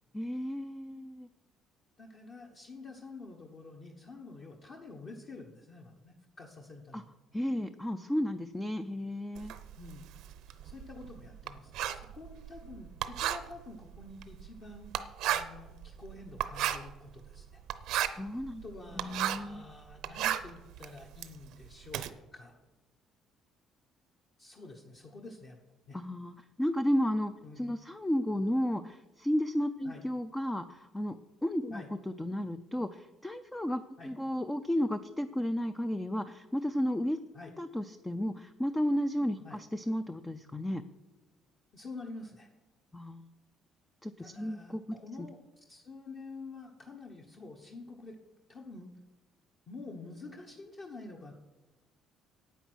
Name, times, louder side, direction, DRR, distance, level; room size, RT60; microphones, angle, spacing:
voice 1, 0.1-1.3 6.9-7.0 7.3-9.5 18.2-18.6 18.9-19.6 25.9-31.2 31.4-31.8 32.2-37.2 37.6-40.8 42.9-43.3 44.0-44.8 45.2-45.3, equal, 10° left, 9 dB, 0.4 m, -33 dB
voice 2, 2.0-7.1 9.8-10.1 10.6-14.9 15.3-17.6 18.6-22.5 24.4-25.6 25.9-26.0 27.4-27.7 29.8-30.0 31.7-31.9 34.0-34.1 37.3-37.5 39.4-39.6 41.7-42.5 44.2-48.2 48.5-48.9 49.7-51.3, left 3 dB, 40° left, 1 dB, 1.2 m, -48 dB
Writing, 9.3-19.6 19.9-22.1, right 11 dB, 75° right, 0.7 m, -35 dB
9.2 x 9.1 x 6.2 m, 1.1 s
cardioid pair, 155°, 0 cm